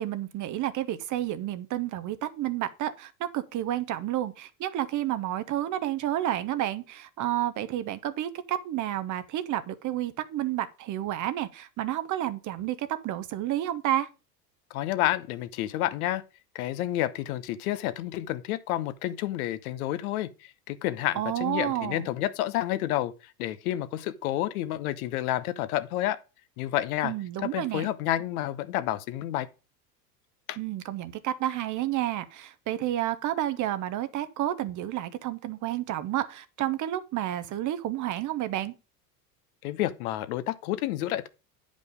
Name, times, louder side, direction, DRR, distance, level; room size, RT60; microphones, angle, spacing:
voice 1, 0.0-14.1 21.1-22.1 27.0-27.9 30.6-38.7, right 13 dB, 40° right, 0.9 m, -30 dB
voice 2, 14.7-16.2 16.5-26.2 26.6-27.1 27.4-29.5 30.5-30.6 39.6-41.3, left 14 dB, 60° left, 0.9 m, -30 dB
9.4 x 5.3 x 5.1 m
hypercardioid pair, 85°, 49 cm